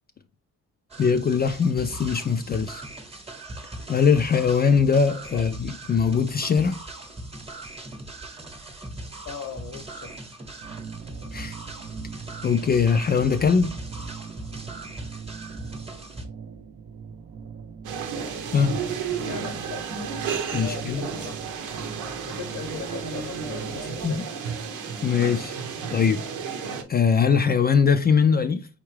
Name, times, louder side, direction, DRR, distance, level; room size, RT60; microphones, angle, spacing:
sound 1, 0.9-16.3, right 2 dB, 20° right, 1.0 m, -39 dB
voice 1, 1.0-2.8 3.9-6.8 11.3-11.5 12.4-13.8 18.5-18.8 20.5-21.0 24.0-24.2 25.0-25.6 25.9-26.2 26.9-28.7, left 6 dB, 35° left, 0.4 m, -21 dB
voice 2, 9.2-10.1 19.2-19.9 20.6-21.5 21.9-24.3, left 7 dB, 75° left, 0.9 m, -39 dB
sound 2, 10.6-24.2, right 6 dB, 50° right, 0.6 m, -41 dB
sound 3, 17.8-26.8, right 6 dB, 90° right, 0.8 m, -32 dB
4.5 x 3.6 x 3.2 m
cardioid pair, 90°, 30 cm